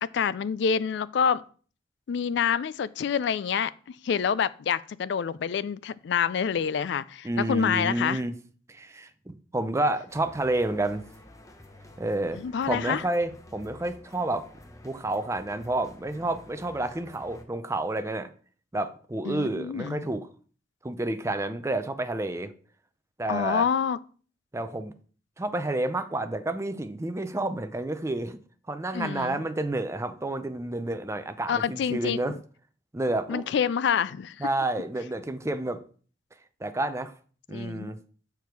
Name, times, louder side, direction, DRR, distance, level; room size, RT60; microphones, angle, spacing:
voice 1, 0.0-1.4 2.1-3.7 4.0-8.2 12.3-13.0 19.2-20.0 23.3-24.0 28.9-29.4 31.5-32.4 33.3-34.5 37.5-37.9, left 7 dB, 65° left, 0.3 m, -27 dB
voice 2, 7.2-8.3 8.7-11.0 12.0-12.4 12.6-14.5 14.8-18.3 18.7-20.3 20.8-22.5 23.2-23.7 24.5-24.9 25.4-28.4 28.7-32.3 32.9-33.4 34.4-35.8 36.6-37.1 37.5-38.0, right 2 dB, 15° right, 0.5 m, -29 dB
sound 1, 10.1-17.4, left 1 dB, 20° left, 0.8 m, -50 dB
7.0 x 4.6 x 4.6 m
head